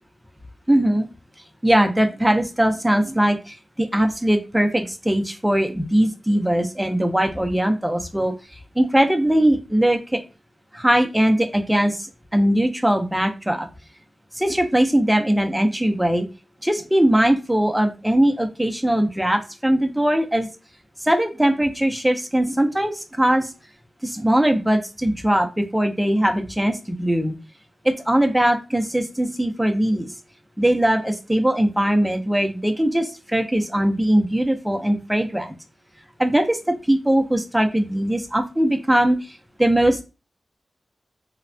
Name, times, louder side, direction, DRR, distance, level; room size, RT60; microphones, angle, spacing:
voice 1, 0.7-1.1 1.6-8.3 8.8-10.2 10.7-12.1 12.3-13.7 14.3-16.3 16.6-20.5 21.0-23.5 24.0-27.3 27.8-30.1 30.6-35.5 36.2-40.0, right 1 dB, 5° right, 4 dB, 0.5 m, -20 dB
3.1 x 2.1 x 2.5 m, 0.31 s
wide cardioid pair, 100°, 0 cm